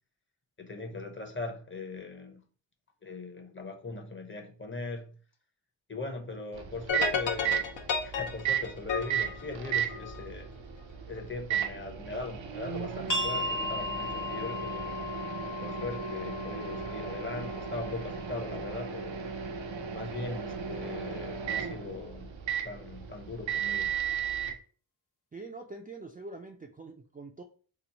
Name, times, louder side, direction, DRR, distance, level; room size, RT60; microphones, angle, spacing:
voice 1, 0.6-2.4 3.0-5.2 5.9-7.7 8.0-10.5 11.1-15.0 15.6-19.3 19.9-22.3 22.6-23.9, left 3 dB, 25° left, 0.7 m, -40 dB
Microwave oven, 6.5-24.5, right 8 dB, 80° right, 0.6 m, -35 dB
sound 1, 6.9-10.3, left 6 dB, 75° left, 0.6 m, -32 dB
sound 2, 13.1-18.5, left 2 dB, 45° left, 1.1 m, -37 dB
voice 2, 25.3-27.4, right 3 dB, 20° right, 0.3 m, -44 dB
3.0 x 2.0 x 3.9 m
cardioid pair, 55°, 45 cm